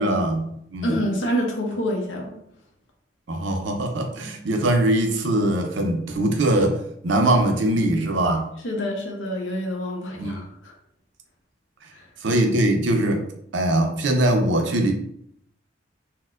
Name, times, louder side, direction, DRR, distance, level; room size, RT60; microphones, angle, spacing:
voice 1, 0.0-1.0 3.3-6.8 7.0-8.5 10.2-10.4 12.2-13.2 13.5-14.9, right 1 dB, 70° right, 4 dB, 0.5 m, -21 dB
voice 2, 0.8-2.3 8.6-10.7 11.9-12.1, equal, 75° left, 0 dB, 0.8 m, -27 dB
4.2 x 2.1 x 2.3 m, 0.73 s
head